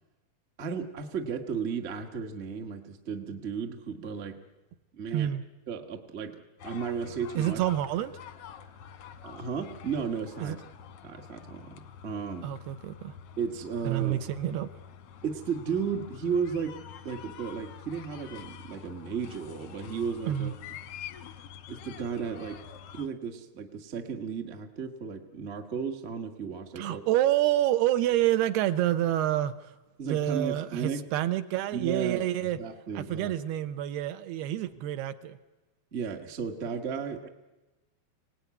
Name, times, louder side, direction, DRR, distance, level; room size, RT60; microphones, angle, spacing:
voice 1, 0.6-4.4 4.9-5.3 5.7-6.4 6.6-7.6 9.2-10.6 11.0-12.5 13.4-14.2 15.2-16.7 17.0-20.5 21.7-22.6 22.9-27.0 30.0-31.1 31.7-33.4 35.9-37.3, right 6 dB, 65° right, 4 dB, 0.6 m, -34 dB
sound 1, 6.6-23.1, left 8 dB, 70° left, 1.4 m, -47 dB
voice 2, 7.4-8.1 10.4-10.6 12.4-13.1 13.8-14.7 20.3-20.5 26.8-29.7 30.1-32.6 33.0-35.4, right 13 dB, 85° right, 10 dB, 3.0 m, -28 dB
25.0 x 18.5 x 9.5 m, 1.1 s
omnidirectional pair, 4.5 m